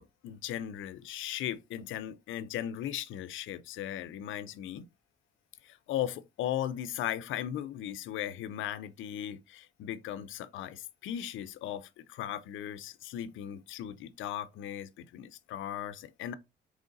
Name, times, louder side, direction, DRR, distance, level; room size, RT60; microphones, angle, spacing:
voice 1, 0.0-4.9 5.6-16.3, left 11 dB, 80° left, 0.5 m, -37 dB
3.8 x 3.2 x 3.8 m
cardioid pair, 90°, 20 cm